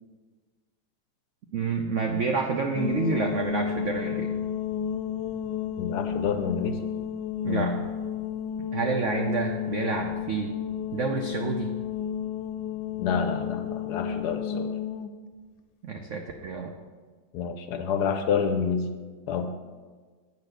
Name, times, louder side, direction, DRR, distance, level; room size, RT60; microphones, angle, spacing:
voice 1, 1.5-4.3 7.4-7.8 8.7-10.6 10.9-11.7 15.8-16.7, right 4 dB, 80° right, 3 dB, 0.6 m, -29 dB
sound 1, 2.8-15.1, left 8 dB, 90° left, 1.3 m, -32 dB
voice 2, 5.8-6.8 7.5-7.8 13.0-14.7 17.3-18.9 19.3-19.5, left 6 dB, 70° left, 7 dB, 1.0 m, -28 dB
8.9 x 4.1 x 6.5 m, 1.5 s
omnidirectional pair, 2.1 m